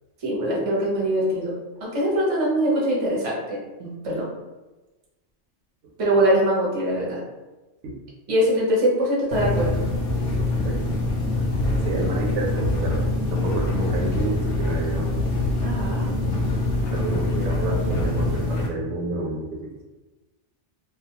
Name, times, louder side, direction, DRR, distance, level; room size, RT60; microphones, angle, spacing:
voice 1, 0.2-1.5 1.8-4.3 6.0-7.2 8.3-9.8 15.6-16.1, equal, 35° right, -4 dB, 0.7 m, -23 dB
sound 1, 9.3-18.7, left 2 dB, 80° left, 0.9 m, -24 dB
voice 2, 11.9-13.0 13.3-15.1 16.8-19.5, right 2 dB, 85° right, -1 dB, 0.9 m, -29 dB
2.3 x 2.1 x 2.8 m, 1.1 s
omnidirectional pair, 1.2 m